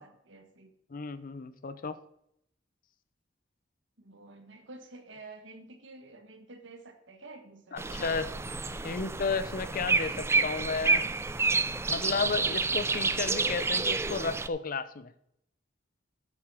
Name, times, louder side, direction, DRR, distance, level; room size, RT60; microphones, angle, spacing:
voice 1, 0.0-0.7 4.0-8.1 8.8-9.1 12.7-12.8, right 2 dB, 70° right, 6 dB, 1.4 m, -50 dB
voice 2, 0.9-2.0 7.7-8.3 8.8-11.0 11.9-15.1, left 4 dB, 45° left, 14 dB, 0.6 m, -33 dB
sound 1, 7.8-14.5, right 4 dB, 15° right, 0.4 m, -29 dB
7.8 x 7.4 x 6.1 m, 0.74 s
head